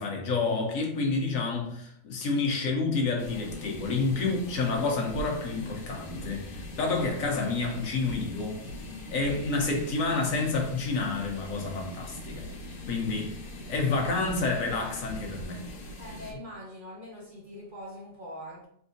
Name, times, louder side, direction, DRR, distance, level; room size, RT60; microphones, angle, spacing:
voice 1, 0.0-8.6 9.1-12.4 12.9-13.4 13.7-15.6, left 3 dB, 70° left, 0 dB, 1.3 m, -29 dB
sound 1, 3.2-16.3, left 1 dB, 90° left, 1.4 m, -41 dB
voice 2, 16.0-18.7, equal, 45° right, -3 dB, 0.8 m, -43 dB
4.2 x 3.5 x 2.6 m, 0.66 s
omnidirectional pair, 1.5 m